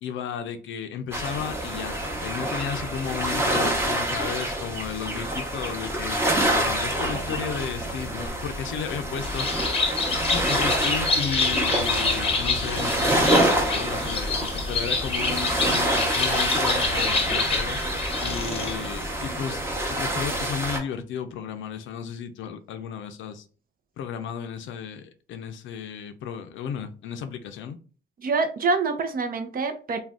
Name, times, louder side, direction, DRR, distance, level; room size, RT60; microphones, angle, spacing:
voice 1, 0.0-2.0 2.2-6.2 6.5-9.5 10.3-17.8 18.2-23.5 24.0-27.8, left 7 dB, 75° left, 0.5 m, -34 dB
sound 1, 1.1-20.8, right 1 dB, 10° right, 0.8 m, -27 dB
Bird, 9.2-18.9, left 4 dB, 30° left, 0.7 m, -27 dB
voice 2, 28.2-30.0, right 4 dB, 45° right, 0.6 m, -26 dB
2.5 x 2.3 x 3.4 m
cardioid pair, 90°, 20 cm